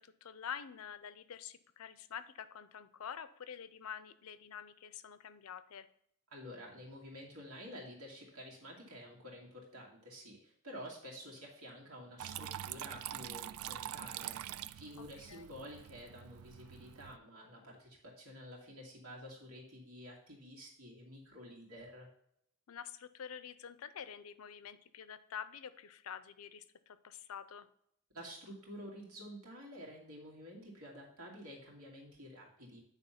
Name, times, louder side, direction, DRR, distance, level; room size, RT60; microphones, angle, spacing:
voice 1, 0.0-5.9 15.3-15.5 22.7-27.7, left 8 dB, 75° left, 14 dB, 0.5 m, -47 dB
voice 2, 6.3-22.1 28.1-32.8, equal, 90° right, -2 dB, 2.4 m, -50 dB
Water tap faucet / Trickle dribble, 12.2-17.2, right 12 dB, 70° right, 0.3 m, -45 dB
9.1 x 3.5 x 5.7 m, 0.72 s
head